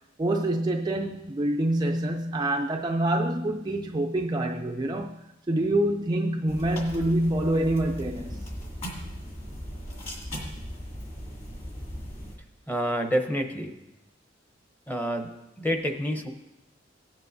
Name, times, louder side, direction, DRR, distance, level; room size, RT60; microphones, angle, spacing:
voice 1, 0.2-8.4, right 1 dB, 20° right, 0.4 m, -26 dB
sound 1, 6.5-12.3, equal, 35° left, 2.6 m, -38 dB
voice 2, 12.7-13.7 14.9-15.3 15.6-16.3, equal, 10° left, 0.8 m, -28 dB
17.0 x 9.0 x 2.7 m
head